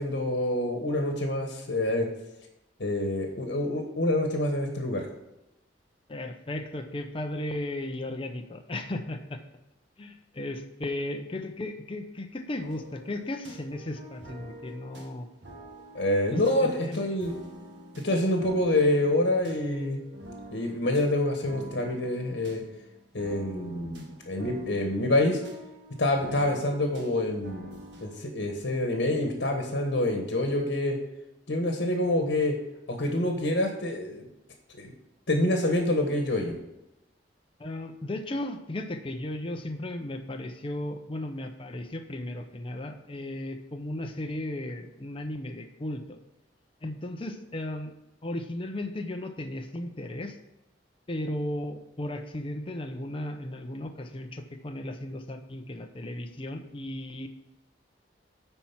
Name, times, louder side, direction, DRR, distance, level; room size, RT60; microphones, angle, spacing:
voice 1, 0.0-2.1 2.8-5.0 15.9-17.3 18.0-20.0 20.5-22.6 23.1-25.4 26.0-30.9 31.5-32.5 32.9-34.3 34.7-34.9 35.3-36.5, left 1 dB, 65° left, 3 dB, 1.3 m, -27 dB
voice 2, 6.1-9.4 10.0-15.3 16.3-17.1 37.6-46.2 46.8-47.9 48.2-50.4 51.1-57.3, left 1 dB, 30° left, 5 dB, 0.7 m, -35 dB
sound 1, 12.6-28.2, equal, 75° right, 1.8 m, -47 dB
9.9 x 4.5 x 5.8 m, 0.93 s
head